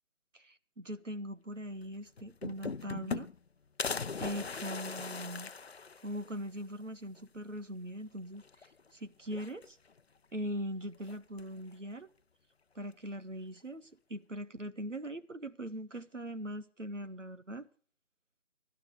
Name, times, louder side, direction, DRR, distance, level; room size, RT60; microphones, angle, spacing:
voice 1, 0.3-3.3 4.2-5.5 6.0-8.4 8.9-9.8 10.3-12.1 12.7-17.7, equal, 85° right, 1.4 m, -41 dB
sound 1, 1.8-1.9 2.2-3.5 3.8-6.4 6.8-6.9 7.2-7.3 8.4-8.9 9.3-10.0 11.0-11.6, left 5 dB, 60° left, 0.7 m, -39 dB
23.5 x 12.0 x 3.2 m
figure-of-eight pair, 150°, 36 cm